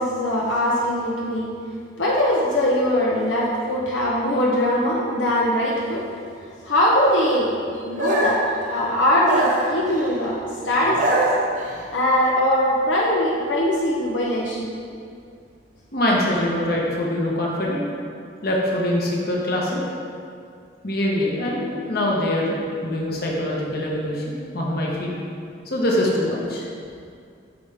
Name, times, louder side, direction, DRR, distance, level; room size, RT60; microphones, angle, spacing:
voice 1, 0.0-1.5 2.0-6.0 6.6-8.4 8.7-10.4 10.6-11.2 11.9-14.7, left 1 dB, 85° left, -4 dB, 0.9 m, -21 dB
sound 1, 8.0-8.5 9.2-10.2 10.8-11.8, right 1 dB, 45° right, 1.0 m, -23 dB
voice 2, 15.9-17.9 18.4-19.8 20.8-25.1 25.6-26.7, left 1 dB, 55° left, -3 dB, 1.3 m, -23 dB
8.5 x 5.6 x 3.6 m, 2.4 s
head